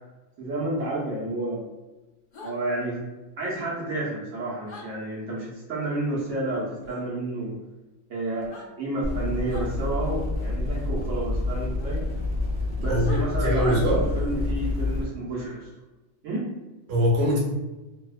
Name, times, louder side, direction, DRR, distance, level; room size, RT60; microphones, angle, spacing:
voice 1, 0.4-1.6 2.4-3.0 3.4-7.6 8.1-12.0 12.8-15.7 16.2-16.5, right 2 dB, 80° right, -6 dB, 1.1 m, -30 dB
sound 1, 2.3-2.5 4.7-4.9 6.8-7.0 8.4-8.7 9.5-9.7 11.8-11.9 13.0-13.3, left 2 dB, 50° left, 0.6 m, -42 dB
sound 2, 9.0-15.0, left 2 dB, 25° right, 0.7 m, -28 dB
voice 2, 13.4-14.1 16.9-17.4, equal, 60° right, -4 dB, 1.0 m, -22 dB
2.7 x 2.1 x 2.3 m, 1.1 s
omnidirectional pair, 1.3 m